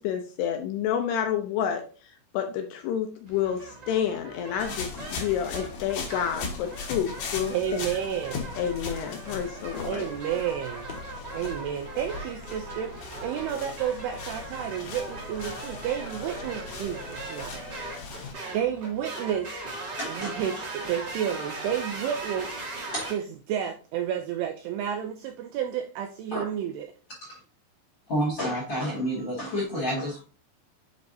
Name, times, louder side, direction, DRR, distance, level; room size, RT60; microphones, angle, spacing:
voice 1, 0.0-1.8 2.3-7.8 8.6-10.1, left 9 dB, 80° left, 5 dB, 2.5 m, -29 dB
sound 1, 3.3-23.1, right 2 dB, 55° right, 1.1 m, -40 dB
sound 2, 4.6-18.3, left 4 dB, 65° left, 2.8 m, -39 dB
voice 2, 7.5-8.5 9.8-10.9 11.3-17.6 18.0-19.6 20.1-26.9, right 9 dB, 85° right, 6 dB, 2.3 m, -31 dB
voice 3, 20.0-20.3 27.2-27.3 28.1-30.2, equal, 45° left, -4 dB, 1.6 m, -29 dB
8.2 x 4.8 x 2.7 m, 0.37 s
omnidirectional pair, 5.2 m